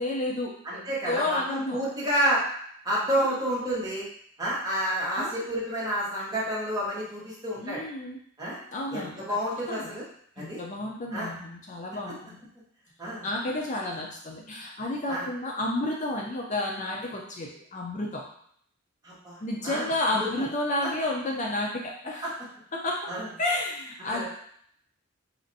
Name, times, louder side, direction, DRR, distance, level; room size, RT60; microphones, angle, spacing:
voice 1, 0.0-1.8 3.2-3.4 5.2-5.3 7.6-8.2 8.7-9.4 9.7-9.9 10.4-12.4 13.2-18.2 19.4-22.3 22.7-23.0 23.4-24.3, left 1 dB, 35° left, -1 dB, 0.4 m, -31 dB
voice 2, 0.6-2.4 2.8-4.1 4.4-7.8 8.4-8.6 8.9-10.0 10.4-10.6 11.1-11.3 12.1-12.2 13.0-13.2 15.1-15.3 19.0-20.5 20.8-20.9 22.2-22.3 23.1-23.3 24.1-24.3, equal, 20° right, -7 dB, 1.0 m, -30 dB
4.2 x 2.5 x 2.6 m, 0.65 s
head